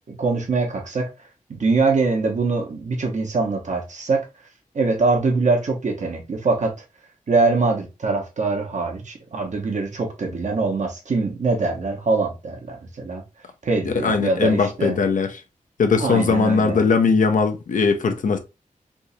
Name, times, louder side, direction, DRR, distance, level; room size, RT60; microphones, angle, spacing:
voice 1, 0.1-1.1 1.5-4.2 4.7-6.7 7.3-13.2 13.6-14.9 16.0-16.8, right 3 dB, 60° right, 1.1 m, -23 dB
voice 2, 13.9-15.4 15.8-18.4, left 5 dB, 70° left, 0.6 m, -20 dB
3.6 x 2.7 x 2.7 m
wide cardioid pair, 100°, 14 cm